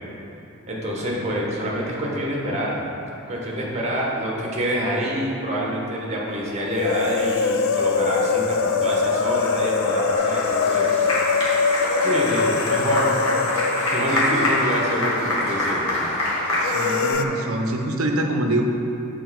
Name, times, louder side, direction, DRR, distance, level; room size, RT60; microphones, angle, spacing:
voice 1, 0.7-2.8 3.3-11.0 11.3-11.5 12.0-13.2 13.9-16.0 16.9-17.0, equal, 30° right, -3 dB, 1.1 m, -26 dB
sound 1, 6.8-15.6 15.9-16.0 16.6-17.2, left 5 dB, 65° left, 0.3 m, -23 dB
Applause, 10.2-17.1, left 1 dB, 80° left, 1.4 m, -25 dB
voice 2, 16.6-18.6, right 1 dB, 75° right, 2 dB, 0.7 m, -24 dB
6.4 x 4.4 x 4.7 m, 3.0 s
head